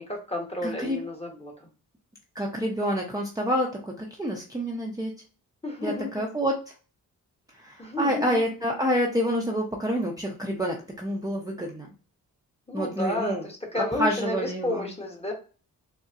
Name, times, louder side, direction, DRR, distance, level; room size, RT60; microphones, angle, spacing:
voice 1, 0.0-1.7 5.6-6.2 7.8-8.4 12.7-15.3, left 1 dB, 15° left, 1 dB, 1.0 m, -32 dB
voice 2, 0.6-1.0 2.3-5.1 5.8-6.6 7.5-11.9 12.7-13.4 13.7-14.9, equal, 10° right, -2 dB, 0.6 m, -28 dB
4.0 x 2.1 x 2.4 m, 0.37 s
cardioid pair, 70°, 35 cm